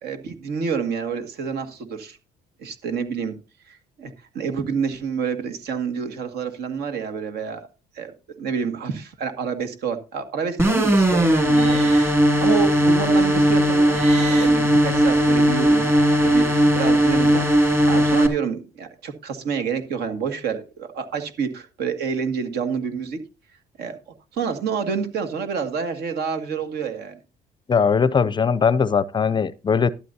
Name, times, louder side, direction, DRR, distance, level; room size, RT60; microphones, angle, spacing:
voice 1, 0.0-2.2 2.6-3.4 3.7-7.7 7.9-8.1 8.4-15.9 16.2-23.2 23.8-27.2, right 6 dB, 75° right, 2.0 m, -28 dB
sound 1, 10.6-18.3, equal, 15° right, 2.5 m, -18 dB
Livestock farm animals working animals, 11.5-12.1 13.8-14.5 15.5-16.5, right 5 dB, 40° right, 6.1 m, -35 dB
voice 2, 27.7-29.9, left 6 dB, 25° left, 0.5 m, -20 dB
13.0 x 11.5 x 2.8 m
cardioid pair, 110°, 17 cm